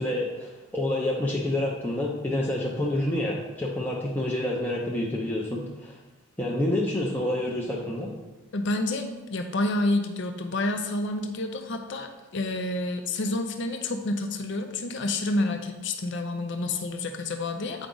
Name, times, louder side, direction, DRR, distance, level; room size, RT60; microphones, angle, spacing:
voice 1, 0.0-6.0 6.4-8.1, left 1 dB, 10° left, -4 dB, 0.6 m, -28 dB
voice 2, 8.5-17.9, left 2 dB, 55° left, 5 dB, 0.5 m, -29 dB
8.3 x 5.0 x 3.8 m, 1.1 s
head